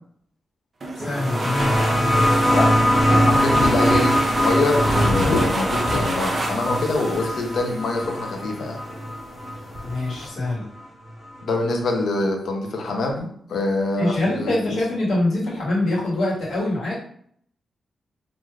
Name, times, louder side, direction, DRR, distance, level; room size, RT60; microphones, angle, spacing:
sound 1, 0.8-8.3, right 2 dB, 35° right, 0.4 m, -30 dB
voice 1, 0.9-2.4 9.8-10.7 14.0-17.0, left 2 dB, 85° left, -6 dB, 1.4 m, -24 dB
sound 2, 1.0-10.3 11.4-11.5, equal, 10° right, 0.8 m, -22 dB
sound 3, 2.0-10.3, left 2 dB, 45° left, 1.5 m, -32 dB
voice 2, 2.5-8.8 11.4-14.8, left 2 dB, 65° left, 1 dB, 0.6 m, -25 dB
3.2 x 2.6 x 2.4 m, 0.63 s
wide cardioid pair, 180°, 0 cm